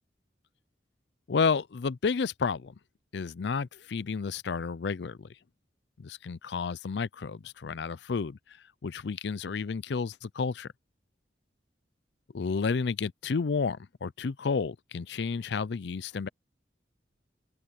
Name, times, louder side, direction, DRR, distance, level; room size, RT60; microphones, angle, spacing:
voice 1, 1.3-2.7 3.1-5.3 6.0-8.4 8.8-10.7 12.3-16.3, left 5 dB, 70° left, 0.5 m, -31 dB
open air
head